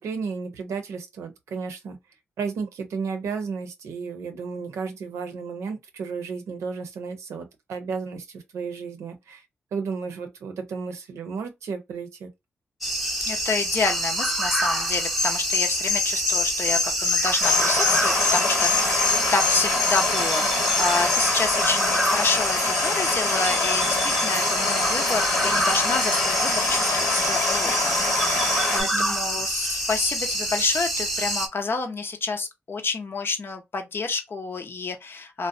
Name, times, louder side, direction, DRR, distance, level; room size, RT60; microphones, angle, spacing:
voice 1, 0.0-2.0 2.4-9.5 9.7-12.3 28.8-29.1, right 5 dB, 80° right, 0.6 m, -33 dB
sound 1, 12.8-31.5, equal, ahead, 0.7 m, -25 dB
voice 2, 13.3-35.5, left 4 dB, 50° left, 0.6 m, -29 dB
sound 2, 17.4-28.8, left 3 dB, 75° left, 1.1 m, -26 dB
2.6 x 2.1 x 2.5 m
supercardioid pair, 50°, 5 cm